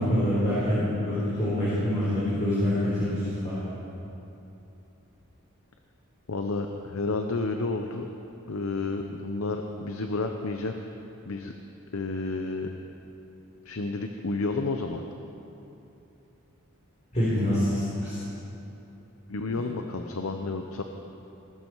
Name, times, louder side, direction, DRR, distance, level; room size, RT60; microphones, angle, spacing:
voice 1, 0.0-2.7 3.0-3.8 17.1-18.2 19.5-19.6, equal, 35° left, -10 dB, 4.0 m, -26 dB
voice 2, 6.3-8.1 8.5-10.9 11.2-11.5 11.9-12.7 13.6-15.0 19.3-20.8, left 3 dB, 70° left, 5 dB, 0.7 m, -31 dB
20.0 x 12.0 x 4.7 m, 2.9 s
head